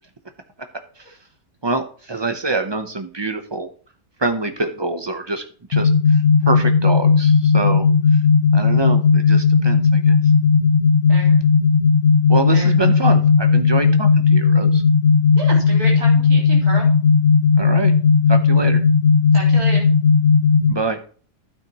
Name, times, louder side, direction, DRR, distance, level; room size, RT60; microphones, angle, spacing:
voice 1, 1.6-3.7 4.2-5.4 5.7-6.2 6.4-7.9 8.5-10.2 12.3-14.8 17.6-17.9 18.3-18.8 20.7-21.0, right 2 dB, 35° right, 7 dB, 0.4 m, -25 dB
sound 1, 5.7-20.7, left 5 dB, 75° left, 1.7 m, -15 dB
voice 2, 15.3-16.9 19.3-19.9, right 1 dB, 65° right, -3 dB, 4.3 m, -30 dB
12.0 x 9.1 x 3.0 m, 0.41 s
omnidirectional pair, 1.7 m